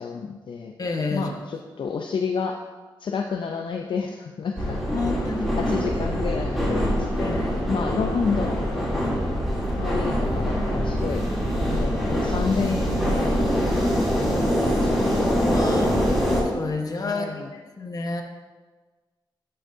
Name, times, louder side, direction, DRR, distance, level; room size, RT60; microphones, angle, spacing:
voice 1, 0.0-0.7 1.1-2.6 3.0-4.8 5.1-5.2 5.6-7.4 7.7-9.1 9.8-11.2 11.7-13.3 14.1-16.3 17.0-17.5, left 5 dB, 70° left, 3 dB, 0.5 m, -30 dB
voice 2, 0.8-1.3 4.9-5.8 7.2-7.9 15.5-18.2, left 3 dB, 45° left, 3 dB, 1.2 m, -30 dB
sound 1, 4.6-16.4, equal, ahead, 3.0 m, -24 dB
11.0 x 7.8 x 2.7 m, 1.3 s
wide cardioid pair, 95°, 9 cm